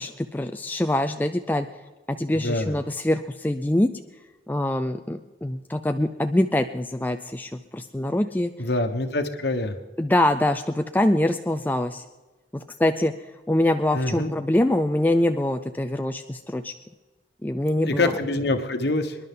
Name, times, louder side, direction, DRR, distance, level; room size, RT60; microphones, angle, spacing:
voice 1, 0.0-1.7 2.1-3.9 4.5-8.5 10.0-12.0 12.5-13.1 13.5-16.7 17.4-18.1, left 1 dB, 10° left, 7 dB, 0.3 m, -24 dB
voice 2, 2.3-2.7 8.6-9.7 13.9-14.3 17.8-19.2, left 2 dB, 60° left, 7 dB, 1.2 m, -25 dB
25.5 x 11.0 x 3.8 m, 1.2 s
head